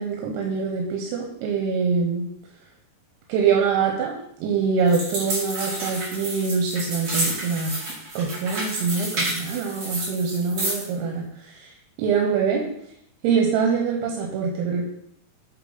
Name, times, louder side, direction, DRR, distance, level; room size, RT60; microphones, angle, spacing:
voice 1, 0.0-2.3 3.3-4.1 4.4-7.7 8.2-11.7 12.0-12.6 13.2-14.8, right 5 dB, 90° right, 0 dB, 2.9 m, -24 dB
sound 1, 4.9-10.9, right 1 dB, 40° right, 3.4 m, -30 dB
8.2 x 3.9 x 3.9 m, 0.71 s
omnidirectional pair, 4.5 m